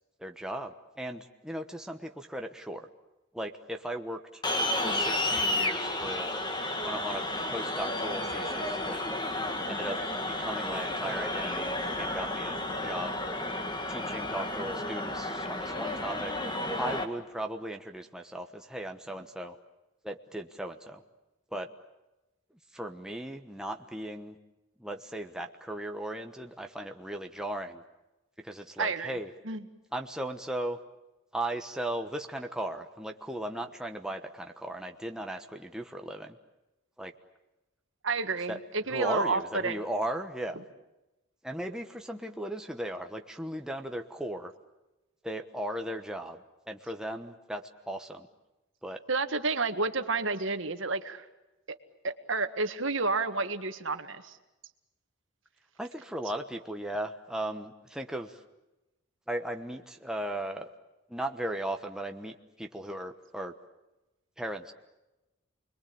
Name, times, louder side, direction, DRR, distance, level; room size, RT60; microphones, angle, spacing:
voice 1, 0.2-2.9 3.3-4.4 4.8-6.3 6.8-9.0 9.7-10.0 10.4-13.2 13.9-16.3 16.8-19.6 20.0-21.0 21.5-21.7 22.7-24.4 24.8-27.8 28.4-29.3 29.9-30.8 31.3-36.4 37.0-37.1 38.5-38.6 38.9-40.6 41.4-44.5 45.2-46.4 46.7-48.3 48.8-49.0 55.8-58.4 59.3-60.7 61.1-63.5 64.4-64.7, right 1 dB, 5° right, 4 dB, 1.2 m, -37 dB
sound 1, 4.4-17.0, left 1 dB, 20° left, 2.0 m, -32 dB
voice 2, 28.8-29.2 29.5-29.6 38.0-39.8 49.1-51.3 52.0-54.3, right 3 dB, 65° right, 8 dB, 1.8 m, -30 dB
29.5 x 22.0 x 8.8 m, 1.0 s
head